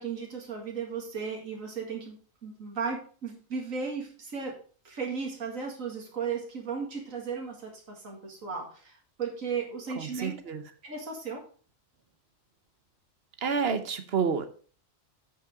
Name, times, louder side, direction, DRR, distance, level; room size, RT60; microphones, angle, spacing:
voice 1, 0.0-2.2 2.4-4.5 4.8-10.4 10.8-11.4, right 5 dB, 85° right, 1 dB, 2.4 m, -35 dB
voice 2, 10.0-10.6 13.4-14.5, right 6 dB, 50° right, 9 dB, 1.2 m, -29 dB
8.5 x 5.8 x 5.1 m, 0.41 s
omnidirectional pair, 1.4 m